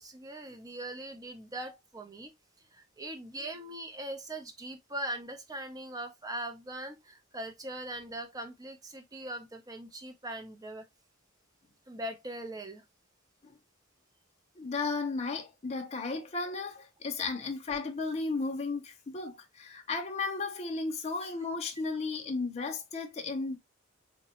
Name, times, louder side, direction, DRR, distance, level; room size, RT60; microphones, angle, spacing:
voice 1, 0.0-2.3 2.7-10.9 11.9-12.8, right 1 dB, 20° right, 0.6 m, -41 dB
voice 2, 14.6-23.6, left 3 dB, 30° left, 0.6 m, -34 dB
3.9 x 2.2 x 2.8 m
head